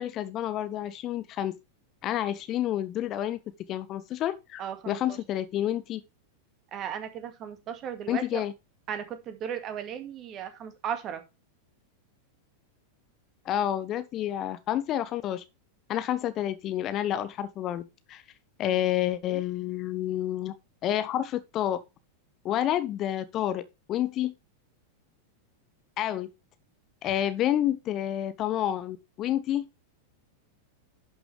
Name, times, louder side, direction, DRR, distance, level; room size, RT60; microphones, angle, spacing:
voice 1, 0.0-1.5 2.0-3.4 3.7-6.0 8.1-8.5 13.4-15.4 15.9-18.2 18.6-20.5 20.8-21.8 22.4-23.6 23.9-24.3 26.0-26.3 27.0-29.7, left 12 dB, 35° left, 0.8 m, -29 dB
voice 2, 4.6-5.2 6.7-8.4 8.9-11.2 18.7-18.8 19.2-19.4 27.0-27.2, right 8 dB, 30° right, 2.1 m, -36 dB
11.5 x 6.0 x 3.3 m
figure-of-eight pair, 90°, 0 cm